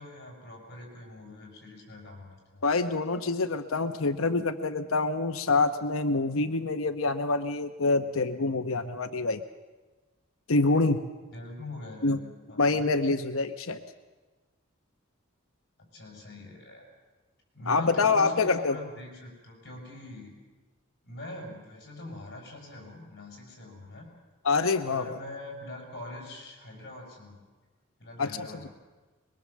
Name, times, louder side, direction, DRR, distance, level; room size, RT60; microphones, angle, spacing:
voice 1, 0.0-2.6 11.3-12.9 15.9-16.9 17.5-20.3 21.0-24.1 24.9-27.4 28.0-28.7, left 1 dB, 50° left, 0 dB, 7.2 m, -43 dB
voice 2, 2.6-9.4 10.5-11.0 12.0-12.2 12.6-13.8 17.7-18.8 24.4-25.1 28.2-28.5, left 3 dB, 90° left, 9 dB, 0.9 m, -26 dB
23.0 x 22.0 x 7.4 m, 1.2 s
head